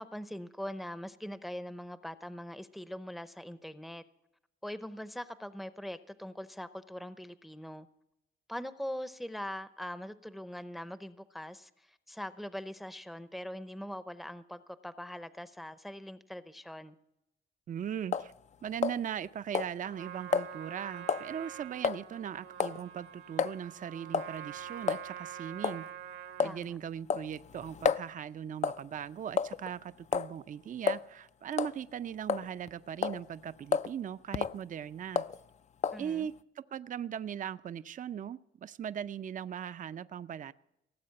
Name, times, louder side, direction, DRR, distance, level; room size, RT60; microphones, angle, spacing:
voice 1, 0.0-4.0 4.6-7.9 8.5-17.0 26.4-26.8 35.9-36.3, equal, ahead, 0.7 m, -42 dB
voice 2, 17.7-18.3 18.6-25.9 26.4-35.2 36.0-40.5, right 9 dB, 40° right, 0.5 m, -39 dB
sound 1, 18.1-18.3 18.8-19.3 19.5-19.7 20.3-20.5 21.1-21.3 21.8-22.0 22.6-22.8 23.4-23.5 24.1-24.3 24.9-25.0 25.6-25.8 26.4-26.6 27.1-28.1 28.6-28.9 29.4-29.7 30.1-30.3 30.9-31.0 31.5-31.8 32.3-32.7 33.0-33.2 33.7-33.9 34.3-34.6 35.2-35.4 35.8-36.0, left 6 dB, 35° left, 0.4 m, -30 dB
Trumpet, 19.8-26.6, right 9 dB, 80° right, 1.4 m, -46 dB
17.5 x 7.7 x 7.6 m
cardioid pair, 90°, 20 cm